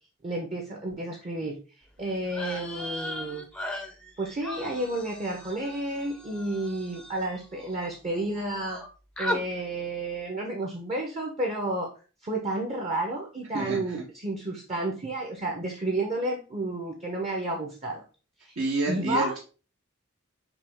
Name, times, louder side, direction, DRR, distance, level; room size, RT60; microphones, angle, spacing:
voice 1, 0.2-1.6 2.0-3.5 4.2-8.8 9.2-11.9 12.2-18.0 18.4-18.6 18.9-19.3, right 2 dB, 30° right, 1 dB, 0.7 m, -31 dB
sound 1, 2.3-7.9 8.1-8.9 9.2-9.4, left 1 dB, 5° left, 0.5 m, -37 dB
voice 2, 18.6-19.4, right 2 dB, 65° right, -1 dB, 0.9 m, -28 dB
6.0 x 2.3 x 3.4 m, 0.35 s
head